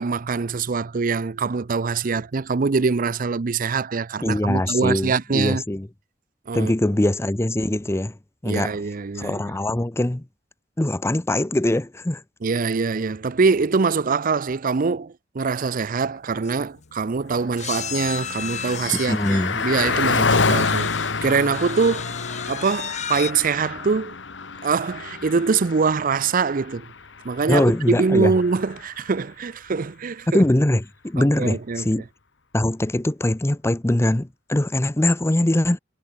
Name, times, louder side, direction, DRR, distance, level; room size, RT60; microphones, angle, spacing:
voice 1, 0.0-5.6 6.5-6.7 8.5-9.5 12.4-20.9 21.2-22.2 22.5-24.2 24.6-26.9 27.2-30.4 31.2-31.9, right 4 dB, 50° right, 0.5 m, -23 dB
voice 2, 4.2-5.9 6.5-8.2 8.4-8.8 9.1-10.2 10.8-12.2 18.9-19.6 27.5-28.3 30.3-32.1 32.5-35.8, left 1 dB, 15° left, 0.6 m, -22 dB
sound 1, 16.1-16.2 16.4-16.6 17.6-21.2 21.5-23.3, left 8 dB, 40° left, 3.9 m, -34 dB
Car passing by, 17.2-29.0, left 4 dB, 75° left, 1.6 m, -28 dB
head